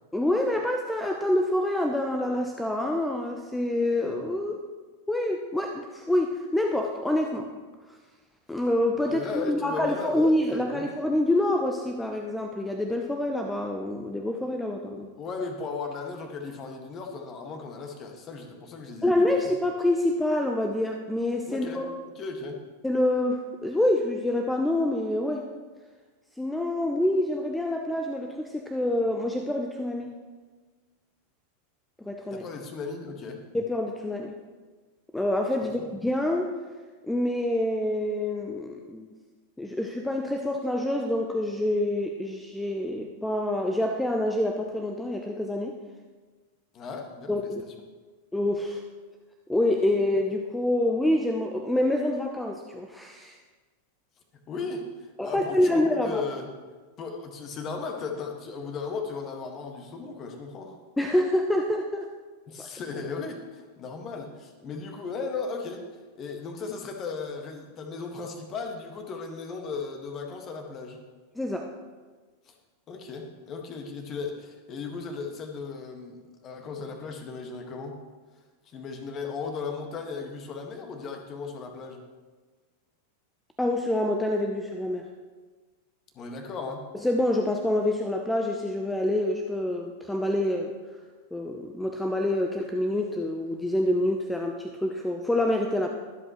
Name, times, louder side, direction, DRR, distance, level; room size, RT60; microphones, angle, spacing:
voice 1, 0.1-4.6 5.1-7.5 8.5-15.1 19.0-21.9 22.8-25.5 26.4-30.2 32.0-32.5 33.5-34.3 35.1-36.5 37.0-39.1 39.6-45.8 47.3-47.6 48.3-48.8 49.5-53.4 55.2-56.2 61.0-62.1 62.6-62.7 71.4-71.7 83.6-85.1 86.9-90.7 91.3-95.9, left 1 dB, 5° left, 3 dB, 0.8 m, -26 dB
voice 2, 9.1-10.9 15.2-19.4 21.5-22.6 32.3-33.4 35.6-35.7 46.7-47.5 54.5-56.5 57.0-60.7 62.5-65.9 66.1-71.0 72.4-72.5 72.9-78.0 78.6-82.0 86.1-86.9, left 4 dB, 30° left, 3 dB, 1.7 m, -36 dB
22.0 x 7.9 x 3.1 m, 1.4 s
figure-of-eight pair, 90°, 0 cm